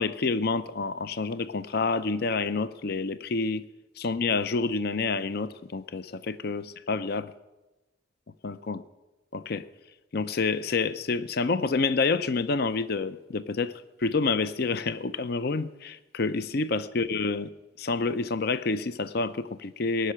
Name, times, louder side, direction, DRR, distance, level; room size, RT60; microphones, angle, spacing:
voice 1, 0.0-3.6 4.0-7.3 8.4-8.8 9.3-9.6 10.1-17.5 17.8-20.1, left 4 dB, 55° left, 14 dB, 0.5 m, -28 dB
17.5 x 6.7 x 9.8 m, 1.1 s
head